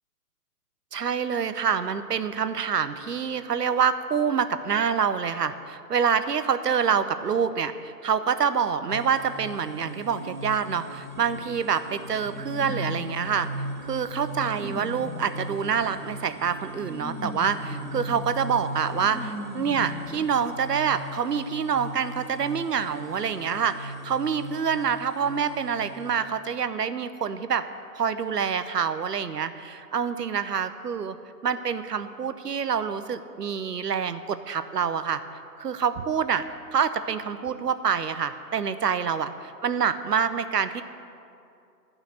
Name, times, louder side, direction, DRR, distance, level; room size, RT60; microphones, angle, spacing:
voice 1, 0.9-13.5 13.8-27.6 27.9-31.2 31.4-35.2 35.6-36.4 36.7-40.8, right 7 dB, 75° right, 12 dB, 0.8 m, -26 dB
sound 1, 8.9-26.2, equal, 35° right, 0.4 m, -38 dB
sound 2, 11.1-20.2, left 1 dB, 10° left, 1.7 m, -41 dB
11.0 x 5.9 x 8.0 m, 2.6 s
figure-of-eight pair, 130°, 48 cm